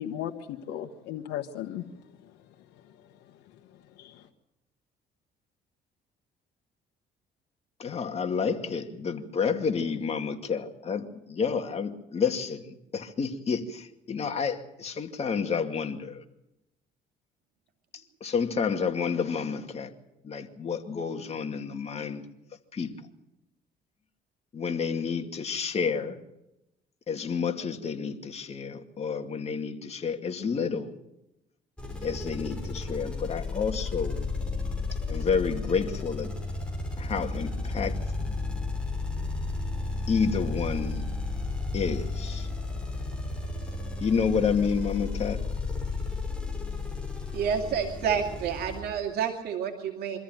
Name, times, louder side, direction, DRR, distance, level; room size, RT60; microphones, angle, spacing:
voice 1, 0.0-1.9 4.0-4.3, left 11 dB, 90° left, 3 dB, 1.3 m, -36 dB
voice 2, 7.8-16.2 18.2-19.9 20.2-22.2 22.7-22.9 24.5-26.2 27.1-30.9 32.0-34.3 35.1-36.3 37.0-38.4 40.1-41.0 41.7-42.5 44.0-45.4, left 6 dB, 40° left, 5 dB, 2.4 m, -30 dB
sound 1, 31.8-48.8, left 3 dB, 5° left, 6.3 m, -33 dB
voice 3, 47.3-50.2, right 7 dB, 70° right, 2 dB, 2.4 m, -29 dB
24.0 x 14.0 x 9.1 m, 0.90 s
cardioid pair, 110°, 17 cm